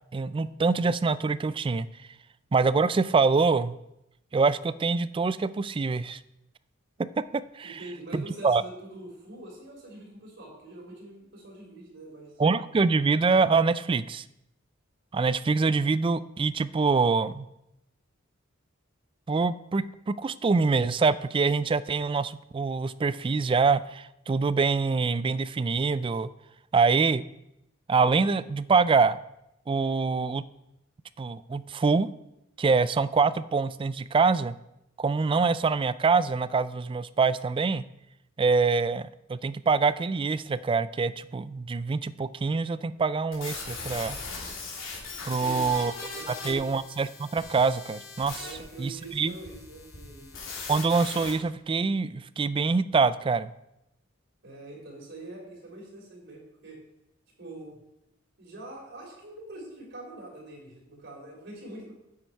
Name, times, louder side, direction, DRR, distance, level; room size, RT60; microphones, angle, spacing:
voice 1, 0.1-1.9 2.5-3.8 4.3-6.2 7.0-7.8 8.1-8.6 12.4-14.2 15.1-17.5 19.3-26.3 26.7-27.2 27.9-29.2 29.7-30.4 31.2-32.1 32.6-34.6 35.0-37.8 38.4-44.2 45.3-45.9 46.3-48.5 48.8-49.3 50.7-53.5, right 4 dB, 25° right, 16 dB, 0.3 m, -25 dB
voice 2, 7.6-12.3 45.2-45.7 46.1-46.6 48.4-50.3 54.4-56.8 57.4-57.8 58.4-61.9, right 2 dB, 60° right, -2 dB, 3.6 m, -44 dB
sound 1, 43.3-51.3, left 4 dB, 75° left, 3.2 m, -40 dB
9.4 x 7.8 x 4.6 m, 0.87 s
head